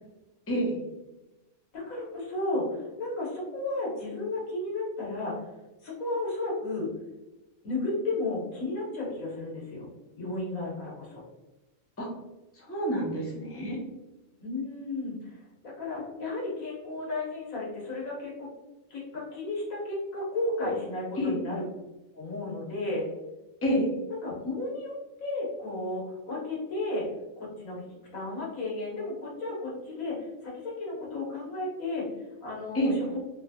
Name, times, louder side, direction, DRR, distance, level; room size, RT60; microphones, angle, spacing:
voice 1, 0.5-0.8 12.0-12.1 12.7-13.8 21.2-21.3 23.6-23.9 32.7-32.9, equal, 20° left, -3 dB, 0.4 m, -27 dB
voice 2, 1.7-5.4 5.8-6.9 7.6-9.9 10.2-11.2 14.4-18.5 18.9-21.6 22.1-23.1 24.1-24.9 25.2-27.1 27.4-32.1 32.4-33.1, left 2 dB, 90° left, -4 dB, 1.5 m, -33 dB
3.0 x 2.7 x 2.3 m, 1.0 s
omnidirectional pair, 1.4 m